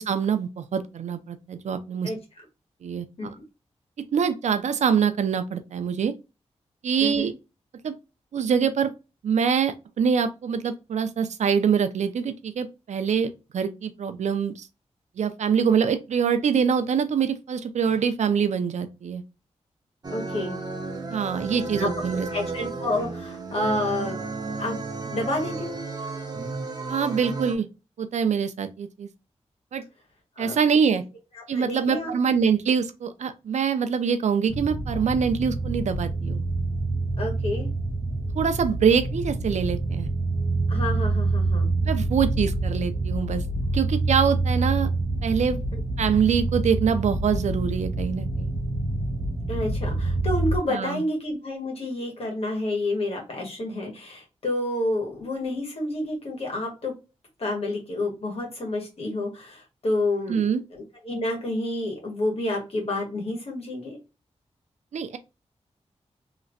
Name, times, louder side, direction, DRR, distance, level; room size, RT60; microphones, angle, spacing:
voice 1, 0.0-2.1 2.8-3.4 4.1-6.1 6.8-7.3 7.8-7.9 8.3-8.9 9.2-14.7 15.2-19.2 21.1-22.5 26.9-27.7 28.0-29.1 29.7-29.8 30.4-31.0 31.5-36.4 38.4-40.1 41.9-43.4 43.7-44.9 45.2-45.6 46.0-48.5 50.7-51.0 60.3-60.6 64.9-65.2, right 7 dB, 90° right, 0.5 m, -24 dB
voice 2, 7.0-7.3 20.1-20.6 21.8-21.9 22.3-24.2 24.6-24.7 25.1-25.8 30.4-30.6 31.4-32.1 37.2-37.7 40.7-41.7 49.5-56.9 57.4-60.4 60.7-64.0, left 1 dB, 60° left, 1.6 m, -29 dB
sound 1, 20.0-27.5, right 3 dB, 35° right, 0.7 m, -33 dB
sound 2, 34.5-50.6, right 2 dB, 55° right, 1.1 m, -27 dB
3.2 x 2.9 x 2.5 m
wide cardioid pair, 150°, 12 cm